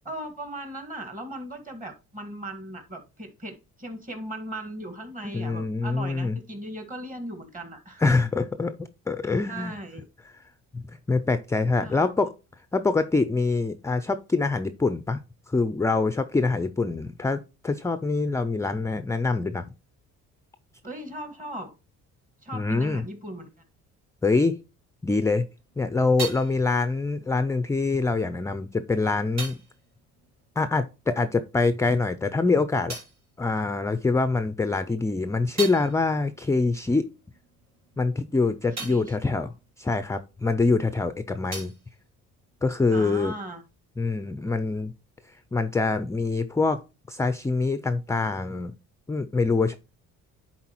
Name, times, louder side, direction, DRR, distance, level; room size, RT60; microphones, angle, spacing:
voice 1, 0.0-8.0 9.5-10.1 11.8-12.1 20.8-21.7 22.4-23.5 38.8-39.2 42.9-43.6, right 1 dB, 25° right, 6 dB, 1.7 m, -38 dB
voice 2, 5.3-6.4 8.0-9.7 10.7-10.8 11.1-12.3 12.7-15.2 15.5-19.7 22.5-23.0 24.2-24.6 25.0-25.5 25.8-29.6 30.6-33.0 33.4-37.1 38.0-39.5 39.8-41.7 42.6-43.3 44.0-44.9 45.5-46.8 47.1-48.7 49.1-49.8, left 3 dB, 10° left, 12 dB, 0.3 m, -25 dB
sound 1, 25.5-31.4 31.6-34.3 34.7-40.8 41.0-43.1, right 4 dB, 55° right, 2.9 m, -42 dB
10.0 x 4.0 x 2.9 m, 0.30 s
cardioid pair, 80°, 31 cm